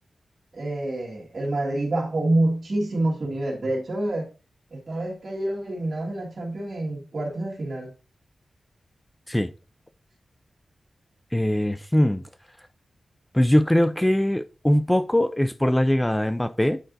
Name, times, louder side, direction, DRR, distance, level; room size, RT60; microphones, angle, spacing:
voice 1, 0.5-4.3 4.7-7.9, right 1 dB, 50° right, 1.9 m, -27 dB
voice 2, 11.3-12.2 13.3-16.8, left 1 dB, 10° left, 0.3 m, -21 dB
8.8 x 4.4 x 2.6 m
wide cardioid pair, 85°, 0 cm